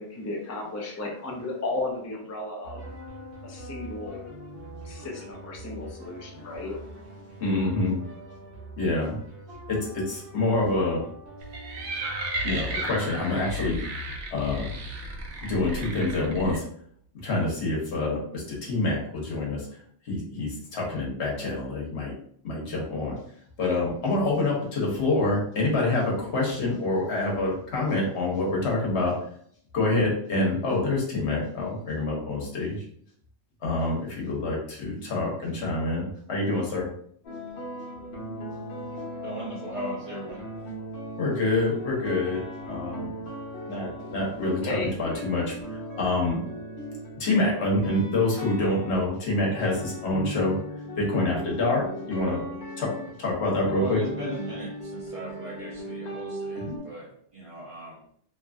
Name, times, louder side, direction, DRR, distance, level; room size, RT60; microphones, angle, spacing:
voice 1, 0.0-3.0 3.4-4.3 4.8-7.3 44.6-44.9, left 2 dB, 25° left, -1 dB, 0.3 m, -34 dB
sound 1, 2.6-13.6, right 1 dB, 60° right, 1.2 m, -43 dB
voice 2, 7.4-8.0 8.8-9.2 9.7-11.0 12.4-13.8 14.3-14.7 15.4-16.6 17.2-19.8 20.0-22.2 22.4-23.2 23.6-29.1 29.7-32.8 33.6-36.9 41.2-42.4 42.7-43.1 43.7-46.4 47.2-50.5 51.0-52.4 52.8-52.9 53.2-54.0 56.7-56.8, left 2 dB, 85° left, -3 dB, 1.2 m, -26 dB
sound 2, 11.4-16.6, right 1 dB, 75° right, 0.8 m, -33 dB
sound 3, 37.2-56.8, equal, 55° left, 1.0 m, -38 dB
voice 3, 39.2-40.4 53.8-58.0, right 1 dB, 40° right, -5 dB, 0.6 m, -37 dB
2.8 x 2.5 x 2.3 m, 0.64 s
omnidirectional pair, 1.1 m